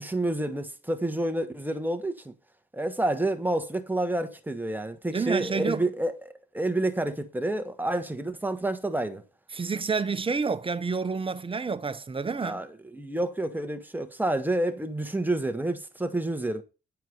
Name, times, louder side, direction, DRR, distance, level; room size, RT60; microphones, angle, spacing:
voice 1, 0.0-2.3 2.7-9.2 12.4-16.6, right 1 dB, 10° right, 1.3 m, -29 dB
voice 2, 5.1-5.8 9.5-12.6, right 5 dB, 30° right, 0.8 m, -29 dB
9.5 x 4.6 x 5.2 m
cardioid pair, 65°, 19 cm